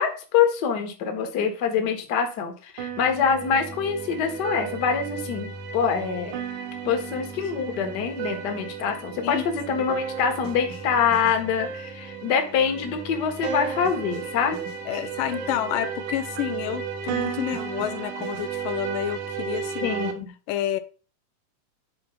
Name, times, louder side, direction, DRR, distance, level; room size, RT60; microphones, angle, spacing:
voice 1, 0.0-6.4 6.8-14.6 14.9-15.0 19.8-20.3, left 6 dB, 45° left, 1.5 m, -25 dB
sound 1, 2.8-20.1, right 6 dB, 65° right, 2.6 m, -34 dB
voice 2, 14.9-19.9 20.5-20.8, left 12 dB, 85° left, 2.4 m, -29 dB
9.7 x 4.4 x 5.8 m
omnidirectional pair, 3.9 m